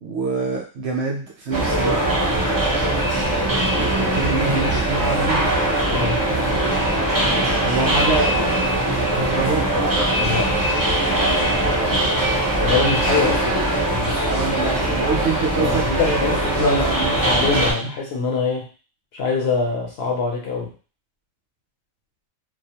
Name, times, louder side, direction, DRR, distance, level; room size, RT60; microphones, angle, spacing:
voice 1, 0.0-2.0 3.8-5.6 7.6-8.3 9.1-9.6 11.6-11.8 14.2-17.5 17.8-17.9, right 4 dB, 65° right, 0 dB, 0.7 m, -26 dB
sound 1, 1.5-17.7, right 1 dB, 35° right, 0.3 m, -21 dB
voice 2, 5.9-6.2 10.2-10.5 12.6-13.6 13.9-14.2 15.5-18.7 19.1-20.7, left 4 dB, 65° left, 0 dB, 0.7 m, -24 dB
2.3 x 2.0 x 2.8 m, 0.36 s
omnidirectional pair, 1.3 m